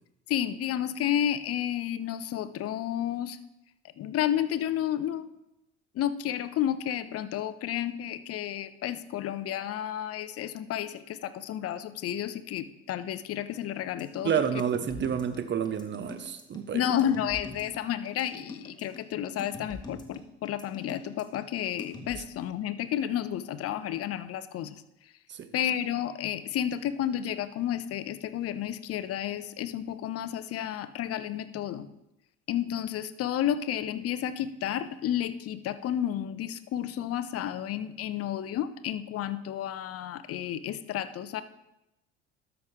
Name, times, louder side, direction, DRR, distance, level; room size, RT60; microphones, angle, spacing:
voice 1, 0.3-3.4 4.0-5.3 5.9-14.3 16.7-24.8 25.5-31.9 32.5-41.4, left 10 dB, 45° left, 0.7 m, -31 dB
sound 1, 14.0-22.2, left 3 dB, 10° left, 1.7 m, -44 dB
voice 2, 14.2-16.8 25.3-25.5, right 8 dB, 35° right, 0.9 m, -29 dB
12.5 x 6.0 x 3.6 m
hypercardioid pair, 65°, 33 cm